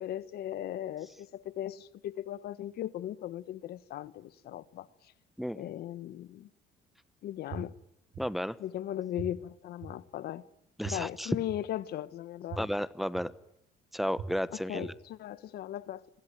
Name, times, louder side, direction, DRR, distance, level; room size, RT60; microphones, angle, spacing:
voice 1, 0.0-4.9 5.5-6.5 7.2-7.7 8.6-10.4 10.9-12.7 14.7-16.0, left 12 dB, 70° left, 1.3 m, -38 dB
sound 1, 7.5-7.6 8.1-8.2 9.2-9.3 9.8-9.9 10.8-10.9 11.5-11.6 12.5-12.6 13.1-13.2 14.2-14.3 14.8-14.9, right 10 dB, 65° right, 5.6 m, -40 dB
voice 2, 8.2-8.6 10.8-11.4 12.6-13.3 13.9-14.9, equal, ahead, 1.0 m, -32 dB
28.0 x 22.0 x 9.2 m
cardioid pair, 110°, 17 cm